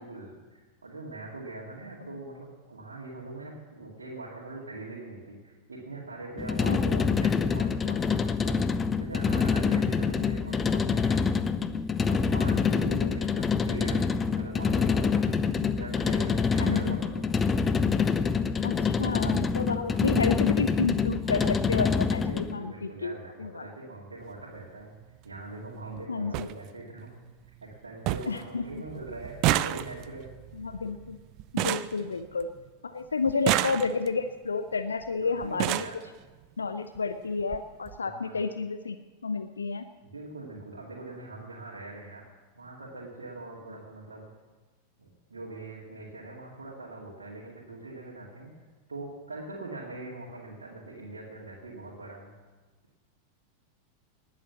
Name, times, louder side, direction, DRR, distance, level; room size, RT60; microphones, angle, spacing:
voice 1, 0.0-11.4 12.1-14.0 14.4-17.2 18.7-18.9 19.5-20.1 21.4-21.5 22.2-25.0 25.2-27.1 27.6-30.3 31.8-32.0 33.3-33.4 35.2-35.9 38.0-38.4 40.1-42.2 42.6-44.3 45.0-48.5 48.9-52.3, right 2 dB, 75° right, -4 dB, 2.2 m, -42 dB
sound 1, 6.4-22.5, left 5 dB, 20° left, 0.7 m, -26 dB
voice 2, 6.6-7.1 12.8-13.2 16.6-17.0 18.6-23.7 26.1-26.5 28.3-28.8 30.5-31.2 31.5-32.5 32.8-35.9 36.6-39.0 39.2-39.9, left 4 dB, 75° left, 9 dB, 0.6 m, -31 dB
sound 2, 24.2-24.4 25.6-25.7 26.0-26.1 26.3-26.5 27.0-27.5 27.7-27.8 28.1-28.4 28.7-32.7 33.3-34.2 35.0-35.1 35.4-36.0 37.0-37.1 37.4-37.6 37.9-38.0, right 14 dB, 40° right, 0.5 m, -30 dB
19.5 x 7.4 x 7.1 m, 1.3 s
figure-of-eight pair, 90°, 0 cm